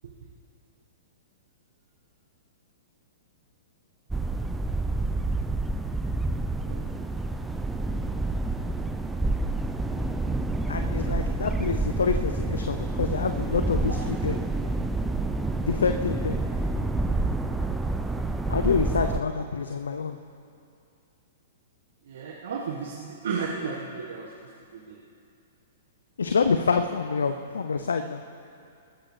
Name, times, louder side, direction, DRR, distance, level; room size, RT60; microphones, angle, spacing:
sound 1, 4.1-19.2, right 2 dB, 5° right, 0.6 m, -28 dB
voice 1, 6.4-7.1 13.8-14.0 19.4-19.5 22.0-25.0, right 5 dB, 60° right, -2 dB, 1.4 m, -35 dB
voice 2, 10.7-14.4 15.6-16.4 18.5-20.2 26.2-28.3, left 5 dB, 75° left, 7 dB, 0.6 m, -27 dB
22.0 x 13.0 x 3.3 m, 2.5 s
figure-of-eight pair, 110°, 0 cm